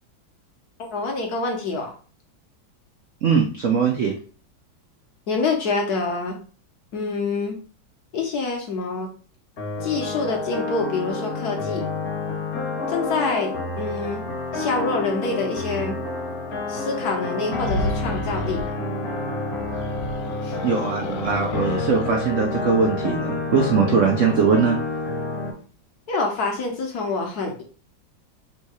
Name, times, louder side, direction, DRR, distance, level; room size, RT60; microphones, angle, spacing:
voice 1, 0.9-1.9 5.3-6.4 6.9-7.6 8.1-9.1 9.8-11.8 12.9-14.2 14.5-16.0 16.7-18.8 20.4-20.6 26.1-27.6, left 3 dB, 60° left, 2 dB, 1.1 m, -26 dB
voice 2, 3.2-4.1 20.6-24.8, right 6 dB, 75° right, 1 dB, 0.6 m, -21 dB
sound 1, 9.6-25.5, left 3 dB, 45° left, 1.0 m, -29 dB
sound 2, 17.5-18.7 19.6-22.2, left 2 dB, 85° left, 1.4 m, -33 dB
3.6 x 2.7 x 4.7 m, 0.40 s
omnidirectional pair, 2.2 m